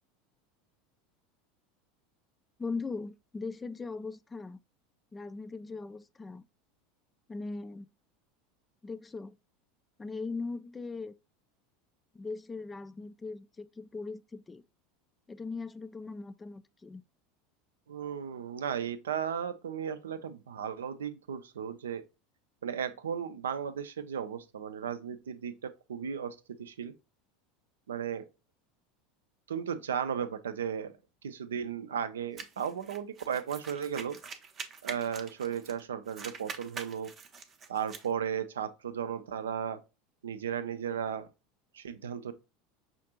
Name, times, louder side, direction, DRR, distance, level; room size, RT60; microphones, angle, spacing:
voice 1, 2.6-4.6 5.1-6.4 7.3-7.9 8.8-9.4 10.0-11.1 12.1-14.6 15.3-17.0, left 4 dB, 15° left, 0.3 m, -39 dB
voice 2, 17.9-22.0 22.6-26.9 27.9-28.2 29.5-30.9 31.2-34.2 34.8-37.1 37.7-39.8 40.2-41.3 41.7-42.3, right 8 dB, 70° right, 0.4 m, -35 dB
sound 1, 32.4-35.8 36.1-38.1, right 5 dB, 30° right, 0.6 m, -44 dB
5.7 x 2.5 x 2.8 m
figure-of-eight pair, 75°, 0 cm